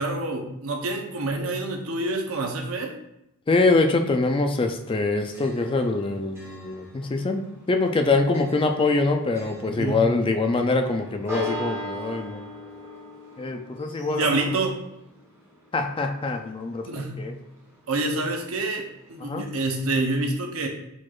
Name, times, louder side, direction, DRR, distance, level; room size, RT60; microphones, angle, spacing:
voice 1, 0.0-3.0 9.7-10.1 14.1-14.8 16.8-17.2 17.9-20.7, right 2 dB, 85° right, 2 dB, 0.7 m, -27 dB
voice 2, 3.5-12.4 13.4-14.3 15.7-16.9 17.2-17.3 19.2-19.4, left 3 dB, 25° left, 5 dB, 0.4 m, -24 dB
Church bell, 4.7-19.8, left 1 dB, 15° right, 1.2 m, -41 dB
4.6 x 4.2 x 2.4 m, 0.84 s
head